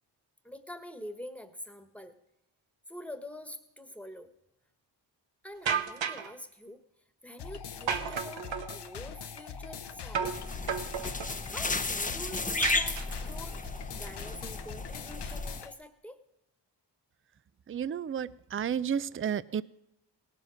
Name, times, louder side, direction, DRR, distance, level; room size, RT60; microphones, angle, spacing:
voice 1, 0.4-2.1 2.9-4.3 5.4-6.8 7.2-10.4 11.5-13.6 13.9-16.2, equal, 5° left, 8 dB, 1.4 m, -46 dB
sound 1, 5.7-6.3 7.9-8.8 10.1-10.4 10.7-11.4 12.6-13.4, right 7 dB, 90° right, 1.0 m, -32 dB
sound 2, 7.4-15.7, left 6 dB, 65° left, 0.9 m, -43 dB
sound 3, 10.2-15.6, left 3 dB, 20° left, 0.7 m, -34 dB
voice 2, 17.7-19.6, right 8 dB, 30° right, 18 dB, 0.4 m, -32 dB
17.5 x 7.6 x 6.4 m, 0.89 s
cardioid pair, 70°, 44 cm